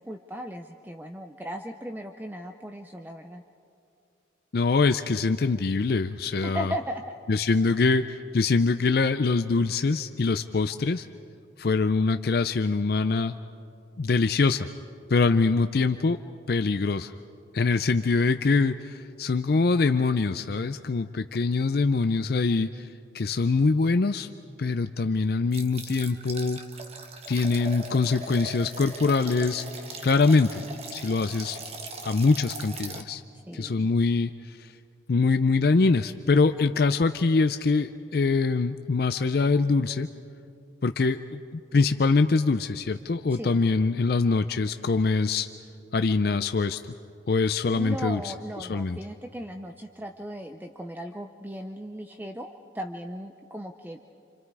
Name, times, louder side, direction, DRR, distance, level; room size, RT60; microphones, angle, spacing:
voice 1, 0.0-3.4 6.3-7.2 33.5-33.9 43.3-43.6 47.7-54.0, equal, 10° right, 5 dB, 0.6 m, -37 dB
voice 2, 4.5-6.7 7.3-11.1 11.6-13.3 14.0-14.7 15.1-16.2 16.5-17.1 17.5-22.9 23.1-24.3 24.6-26.6 27.3-29.6 30.0-30.6 30.9-31.6 32.0-33.2 33.5-34.7 35.1-40.1 40.8-45.5 45.9-46.9 47.3-48.2 48.7-49.0, left 4 dB, 55° left, 9 dB, 0.5 m, -24 dB
sound 1, 25.5-33.0, right 3 dB, 35° right, 1.3 m, -40 dB
29.5 x 26.5 x 4.8 m, 2.6 s
head